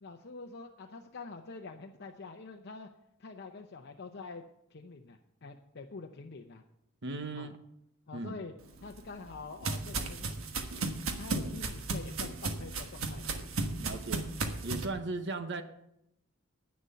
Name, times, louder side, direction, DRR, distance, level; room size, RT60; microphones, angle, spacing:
voice 1, 0.0-2.9 3.2-4.4 4.7-6.6 7.3-7.5 8.1-8.5 8.8-10.4 11.2-13.5, left 3 dB, 55° left, 4 dB, 0.7 m, -46 dB
voice 2, 7.0-7.6 8.1-8.4 13.8-14.3 14.6-15.6, right 3 dB, 60° right, 9 dB, 1.0 m, -37 dB
sound 1, 8.7-14.9, right 3 dB, 75° right, 1.3 m, -35 dB
10.0 x 9.6 x 5.6 m, 0.78 s
head